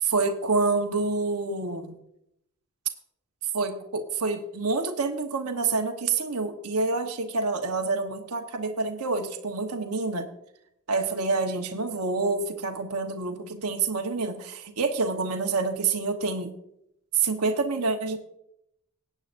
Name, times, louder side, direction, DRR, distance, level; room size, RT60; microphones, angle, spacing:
voice 1, 0.0-2.0 3.5-10.3 10.9-16.5 17.1-18.2, right 4 dB, 85° right, 5 dB, 1.2 m, -27 dB
18.5 x 8.8 x 2.6 m, 0.78 s
head